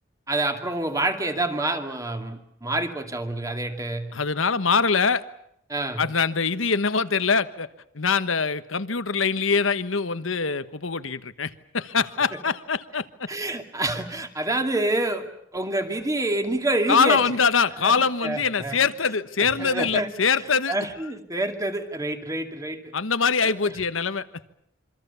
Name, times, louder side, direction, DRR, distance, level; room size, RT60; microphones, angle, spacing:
voice 1, 0.3-4.1 5.7-6.0 12.3-12.4 13.3-17.2 17.8-18.0 18.2-18.8 19.4-22.9 23.4-23.7, right 2 dB, 15° right, 2.4 m, -28 dB
voice 2, 4.1-5.2 6.0-7.7 7.9-13.3 16.9-20.7 22.9-24.3, left 5 dB, 85° left, 1.3 m, -23 dB
27.0 x 25.0 x 7.0 m
head